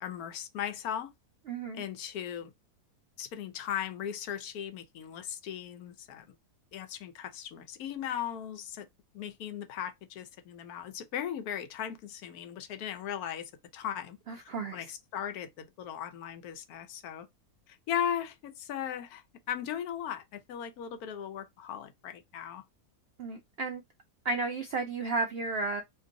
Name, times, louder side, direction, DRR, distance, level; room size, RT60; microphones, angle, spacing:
voice 1, 0.0-1.1 1.7-2.5 3.2-6.3 6.7-8.9 9.1-17.3 17.7-19.2 19.5-22.6, left 9 dB, 80° left, 1.1 m, -37 dB
voice 2, 1.5-1.8 14.3-14.8 23.2-23.8 24.2-25.8, right 3 dB, 75° right, 0.5 m, -33 dB
2.9 x 2.6 x 3.8 m
omnidirectional pair, 1.6 m